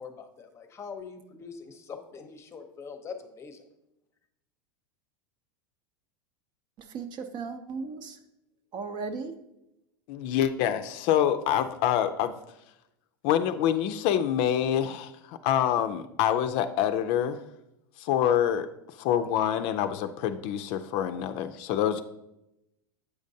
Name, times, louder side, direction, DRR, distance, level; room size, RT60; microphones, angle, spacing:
voice 1, 0.0-3.6, left 5 dB, 25° left, 8 dB, 0.7 m, -43 dB
voice 2, 6.9-8.2 8.7-9.3, right 4 dB, 45° right, 7 dB, 0.7 m, -36 dB
voice 3, 10.1-12.3 13.2-17.4 18.0-18.7 19.0-22.0, left 10 dB, 55° left, 10 dB, 0.4 m, -26 dB
8.1 x 5.1 x 2.7 m, 0.87 s
supercardioid pair, 120°, 11 cm